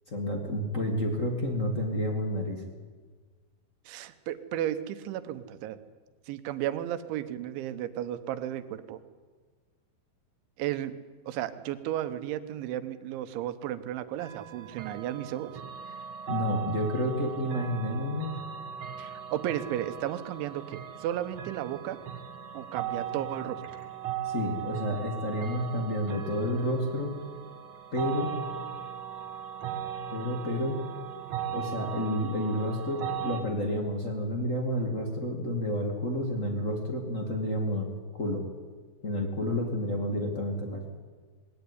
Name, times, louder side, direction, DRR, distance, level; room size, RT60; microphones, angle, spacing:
voice 1, 0.1-2.6 16.3-18.3 24.2-27.2 27.9-28.3 30.1-30.8 31.5-38.4 39.0-40.9, left 1 dB, 35° left, 3 dB, 1.1 m, -30 dB
voice 2, 3.9-5.8 6.3-9.0 10.6-10.9 11.3-15.5 19.0-22.0 22.5-23.6, right 12 dB, 85° right, 11 dB, 3.4 m, -34 dB
sound 1, 14.2-33.4, right 9 dB, 50° right, 2.1 m, -38 dB
21.0 x 17.5 x 9.8 m, 1.5 s
omnidirectional pair, 5.3 m